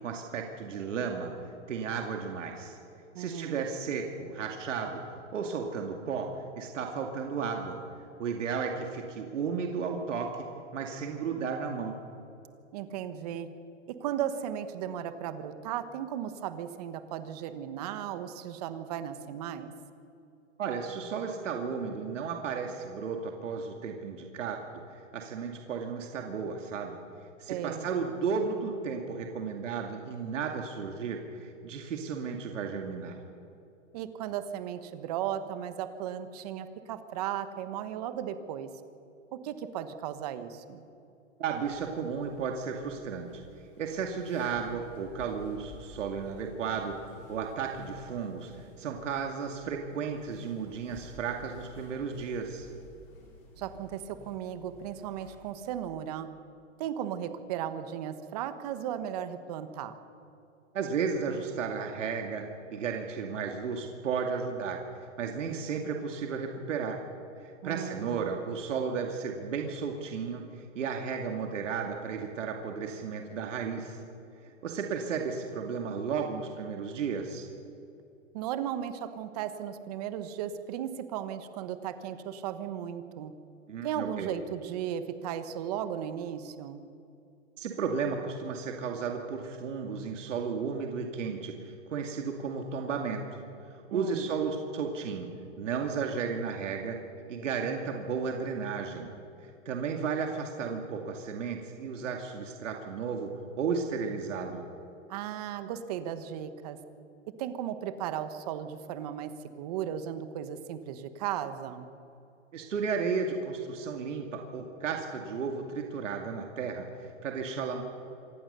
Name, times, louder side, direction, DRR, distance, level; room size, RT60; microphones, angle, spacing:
voice 1, 0.0-1.3 1.7-2.8 3.2-5.0 5.3-6.3 6.6-7.8 8.2-10.4 10.7-12.0 20.6-24.6 24.9-27.0 27.4-33.2 41.4-43.4 43.8-46.9 47.3-52.7 60.7-62.4 62.7-64.8 65.2-67.0 67.4-74.0 74.4-77.5 83.7-84.3 87.6-93.4 93.7-95.3 95.6-97.0 97.3-99.1 99.4-103.3 103.6-104.7 112.5-117.8, right 5 dB, 65° right, 2 dB, 2.4 m, -34 dB
voice 2, 3.1-3.6 12.7-13.5 13.9-19.7 27.5-27.9 33.9-38.7 39.3-40.8 53.6-56.3 56.8-60.0 67.6-68.3 78.3-83.3 83.8-86.8 93.9-94.3 105.1-106.8 107.4-109.3 109.6-111.9, right 10 dB, 30° right, 10 dB, 1.2 m, -36 dB
sound 1, 41.5-56.2, left 2 dB, 35° left, 6.7 m, -54 dB
26.0 x 19.0 x 6.8 m, 2.7 s
hypercardioid pair, 165°, 39 cm